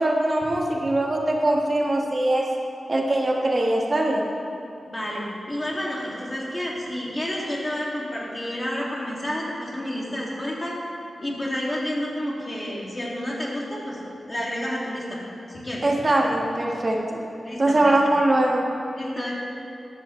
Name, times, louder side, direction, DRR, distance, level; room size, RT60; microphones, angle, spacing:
voice 1, 0.0-2.4 2.9-4.2 15.8-17.2 17.6-18.6, right 1 dB, 30° right, -1 dB, 1.2 m, -22 dB
voice 2, 4.9-10.8 11.2-14.0 14.3-15.2 15.5-15.8 17.4-17.8 18.9-19.3, left 1 dB, 20° left, -4 dB, 2.1 m, -30 dB
14.0 x 11.0 x 3.1 m, 2.7 s
wide cardioid pair, 145°, 0 cm